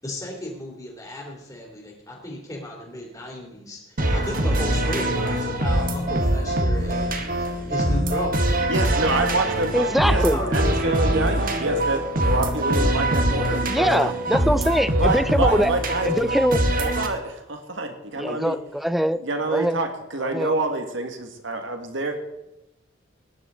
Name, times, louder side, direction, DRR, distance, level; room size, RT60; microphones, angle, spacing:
voice 1, 0.0-9.3 10.2-11.1, left 1 dB, 15° left, -1 dB, 3.0 m, -34 dB
sound 1, 4.0-17.1, right 1 dB, 40° right, 1.4 m, -23 dB
voice 2, 8.7-10.2 10.5-14.2 15.0-16.4 16.8-18.6 19.2-22.2, right 2 dB, 65° right, 6 dB, 1.8 m, -27 dB
voice 3, 9.7-10.4 13.7-15.7 16.1-16.6 18.2-19.2 19.5-19.8 20.2-20.5, equal, ahead, 14 dB, 0.4 m, -22 dB
19.0 x 10.5 x 3.8 m, 0.91 s
head